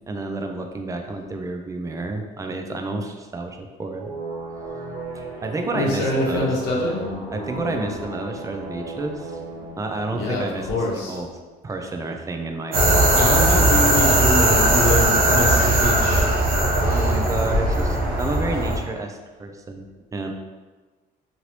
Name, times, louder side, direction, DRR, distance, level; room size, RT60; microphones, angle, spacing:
voice 1, 0.1-4.1 5.1-6.5 7.3-11.3 11.6-13.3 13.7-14.2 16.8-19.8 20.1-20.3, right 2 dB, 20° right, 4 dB, 0.4 m, -30 dB
sound 1, 4.0-11.4, right 2 dB, 80° right, 1.3 m, -35 dB
voice 2, 5.7-6.9 10.1-11.2 13.2-16.3, left 2 dB, 85° left, -3 dB, 0.9 m, -25 dB
sound 2, 12.7-18.8, right 1 dB, 65° right, 0.9 m, -18 dB
3.1 x 2.6 x 2.9 m, 1.3 s
cardioid pair, 110°, 17 cm